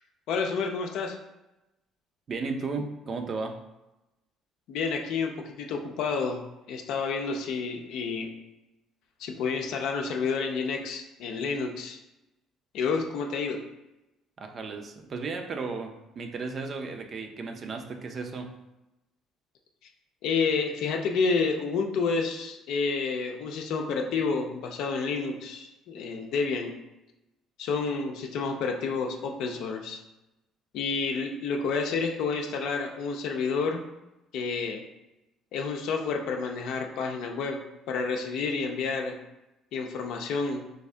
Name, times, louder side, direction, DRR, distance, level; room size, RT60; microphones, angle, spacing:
voice 1, 0.3-1.2 4.7-6.4 6.7-8.3 9.2-12.0 12.7-13.6 20.2-26.7 27.6-30.0 30.7-33.8 34.3-34.8 35.5-37.6 37.9-39.2 39.7-40.6, left 4 dB, 75° left, 0.5 m, -29 dB
voice 2, 2.3-3.6 14.4-18.6, right 4 dB, 45° right, 0.5 m, -34 dB
3.4 x 2.6 x 3.3 m
supercardioid pair, 70°, 0 cm